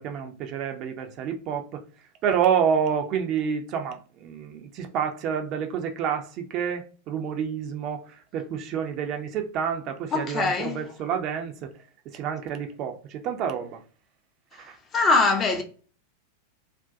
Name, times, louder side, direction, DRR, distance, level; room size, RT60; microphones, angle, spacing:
voice 1, 0.0-1.8 2.2-11.7 12.1-13.8 14.5-14.8, right 7 dB, 40° right, 0.4 m, -28 dB
voice 2, 10.1-10.8 14.9-15.6, left 3 dB, 25° left, 0.5 m, -22 dB
2.5 x 2.1 x 2.5 m
figure-of-eight pair, 90°, 0 cm